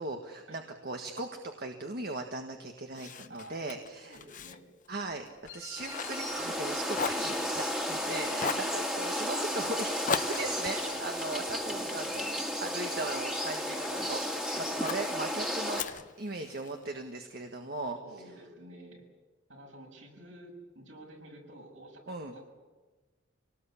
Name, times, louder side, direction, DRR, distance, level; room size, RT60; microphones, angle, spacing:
voice 1, 0.0-4.2 4.9-5.3 5.5-12.2 12.6-18.0 22.1-22.3, right 2 dB, 50° right, 4 dB, 1.5 m, -38 dB
Fire, 2.9-6.7 6.9-8.0 8.4-8.8 10.1-12.5 13.0-14.1 14.8-15.1 15.8-16.8, left 5 dB, 40° left, 0.8 m, -39 dB
voice 2, 3.3-3.8 4.0-4.6 7.4-7.5 8.2-8.8 10.8-12.3 14.5-14.9 17.9-19.1 19.5-22.5, right 1 dB, 65° right, 1 dB, 6.7 m, -51 dB
Wind instrument woodwind instrument, 5.5-11.5, left 2 dB, 80° left, 3.1 m, -49 dB
sound 1, 5.8-15.8, equal, 5° right, 2.0 m, -33 dB
25.5 x 19.0 x 8.5 m, 1.3 s
head